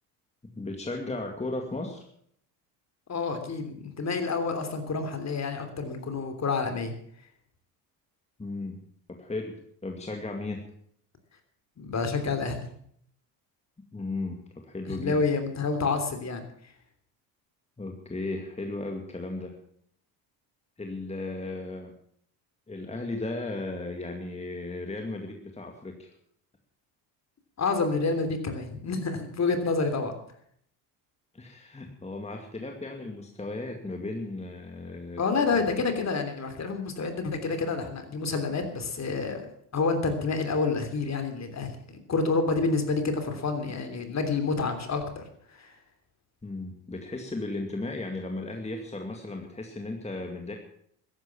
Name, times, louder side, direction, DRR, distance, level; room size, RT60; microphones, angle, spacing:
voice 1, 0.5-2.0 8.4-8.8 9.1-10.6 13.9-15.2 17.8-19.6 20.8-22.0 22.7-26.1 31.3-35.2 46.4-50.5, left 2 dB, 15° left, 2 dB, 2.2 m, -35 dB
voice 2, 3.1-6.9 11.8-12.7 14.9-16.4 27.6-30.1 35.2-39.5 39.7-41.8 42.1-45.2 45.5-45.7, left 4 dB, 35° left, 7 dB, 3.3 m, -28 dB
14.0 x 11.0 x 7.2 m, 0.66 s
supercardioid pair, 85°, 46 cm